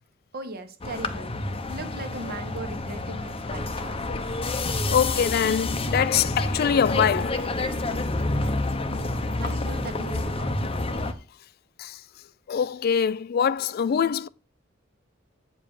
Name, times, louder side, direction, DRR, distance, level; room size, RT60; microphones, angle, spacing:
voice 1, 0.3-4.2 9.4-10.6, right 2 dB, 50° right, 1.4 m, -38 dB
sound 1, 0.8-11.1, left 2 dB, 30° left, 0.8 m, -28 dB
voice 2, 4.9-7.4 11.8-12.0 12.5-14.3, left 7 dB, 50° left, 0.3 m, -23 dB
8.0 x 5.1 x 7.1 m
head